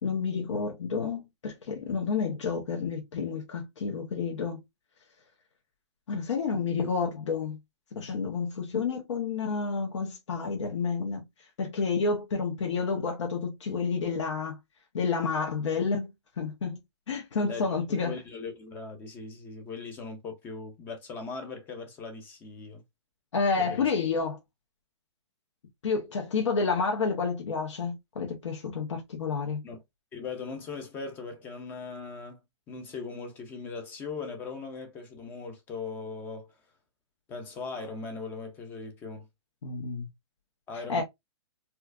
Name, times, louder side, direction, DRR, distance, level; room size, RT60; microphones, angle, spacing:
voice 1, 0.0-4.6 6.1-7.6 7.9-11.2 11.6-14.6 14.9-16.1 16.4-16.8 17.1-18.1 23.3-24.4 25.8-29.6 39.6-40.1 40.9-41.0, left 5 dB, 75° left, 1.2 m, -30 dB
voice 2, 17.5-22.8 23.6-23.9 29.6-29.8 30.1-32.4 32.7-36.5 37.3-39.3 40.7-41.0, left 4 dB, 15° left, 0.5 m, -39 dB
4.3 x 2.4 x 2.4 m
hypercardioid pair, 160°, 16 cm